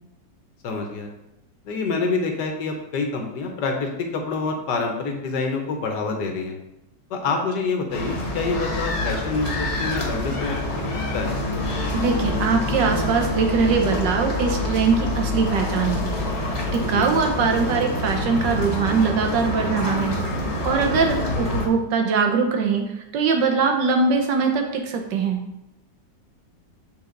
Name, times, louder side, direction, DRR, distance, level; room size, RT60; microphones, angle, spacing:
voice 1, 0.6-1.1 1.6-6.5 7.1-10.6 11.1-11.3 16.9-17.1, left 4 dB, 70° left, 3 dB, 1.5 m, -26 dB
sound 1, 7.9-21.7, left 2 dB, 40° left, 1.4 m, -26 dB
voice 2, 11.9-16.2 16.7-20.2 20.4-25.4, right 5 dB, 75° right, 3 dB, 1.5 m, -22 dB
7.3 x 3.9 x 3.8 m, 0.89 s
omnidirectional pair, 2.0 m